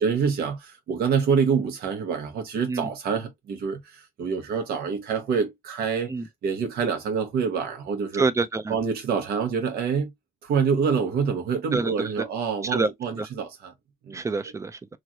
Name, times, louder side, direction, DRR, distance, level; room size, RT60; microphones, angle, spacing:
voice 1, 0.0-6.1 6.4-8.2 8.7-10.1 10.4-13.7 14.1-14.2, right 6 dB, 85° right, 1.0 m, -26 dB
voice 2, 8.2-8.7 11.7-11.9 12.6-12.9 13.2-13.3 14.1-14.8, right 3 dB, 20° right, 0.4 m, -26 dB
3.2 x 2.5 x 2.7 m
cardioid pair, 115°, 15 cm